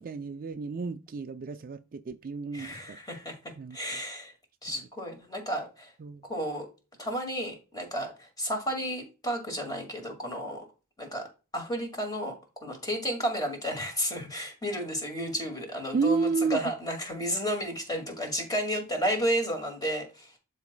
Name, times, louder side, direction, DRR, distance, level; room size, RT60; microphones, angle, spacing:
voice 1, 0.0-3.0 3.6-4.0 6.0-6.2 15.9-16.6, right 4 dB, 40° right, 0.4 m, -31 dB
voice 2, 2.5-4.3 4.6-5.9 6.2-6.7 7.0-10.7 11.0-11.3 11.5-20.4, equal, 15° left, 2.0 m, -32 dB
12.0 x 4.1 x 2.2 m
head